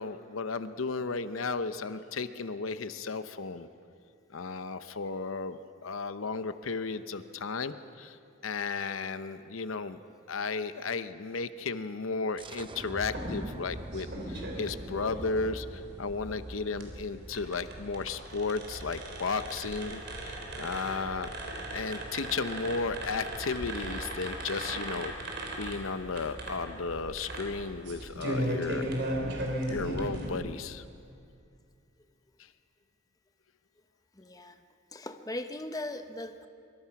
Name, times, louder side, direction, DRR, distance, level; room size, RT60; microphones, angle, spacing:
voice 1, 0.0-3.7 4.3-8.2 8.4-10.0 10.3-21.3 21.7-25.1 25.6-28.9 29.7-30.8 32.4-32.5, left 4 dB, 80° left, 11 dB, 0.8 m, -34 dB
sound 1, 12.4-17.9, right 1 dB, 25° right, 0.7 m, -45 dB
sound 2, 13.0-30.3, right 1 dB, 60° right, 4.3 m, -37 dB
voice 2, 34.1-34.6 34.9-36.5, left 1 dB, 20° left, 7 dB, 1.0 m, -39 dB
24.5 x 24.0 x 6.0 m, 2.5 s
head